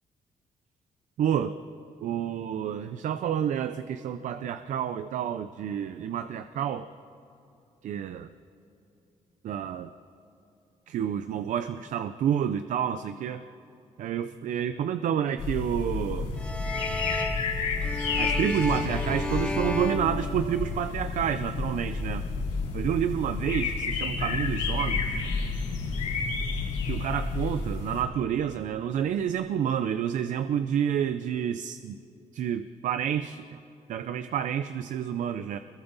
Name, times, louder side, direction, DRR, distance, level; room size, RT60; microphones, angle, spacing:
voice 1, 1.2-1.6 2.0-6.9 7.8-8.2 9.4-9.9 10.9-13.4 14.0-16.3 18.2-22.2 22.7-25.2 26.8-32.0 32.3-33.6 33.9-35.6, right 9 dB, 80° right, 10 dB, 0.6 m, -29 dB
sound 1, 15.4-28.0, left 4 dB, 80° left, 6.5 m, -30 dB
sound 2, 16.4-21.0, left 2 dB, 10° left, 1.9 m, -33 dB
29.5 x 22.5 x 4.1 m, 2.8 s
cardioid pair, 120°, 13 cm